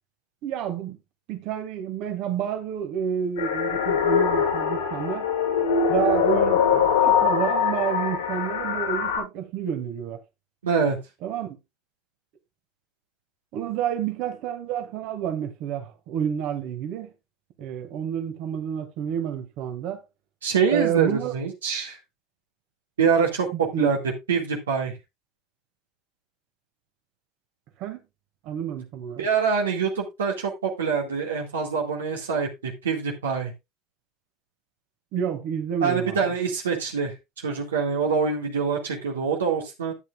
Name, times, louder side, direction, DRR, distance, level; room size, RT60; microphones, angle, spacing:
voice 1, 0.4-1.0 1.3-5.3 5.9-10.2 11.2-11.6 13.5-17.1 17.6-20.0 20.7-21.3 23.5-23.9 27.8-28.0 28.4-29.3 35.1-36.2, right 9 dB, 60° right, 1.8 m, -29 dB
sound 1, 3.4-9.2, left 7 dB, 80° left, 4.0 m, -23 dB
voice 2, 10.6-11.0 20.4-22.0 23.0-24.0 24.3-24.9 29.2-33.5 35.8-37.1 37.4-39.9, right 6 dB, 80° right, 2.0 m, -25 dB
12.0 x 8.9 x 2.4 m
hypercardioid pair, 75°, 0 cm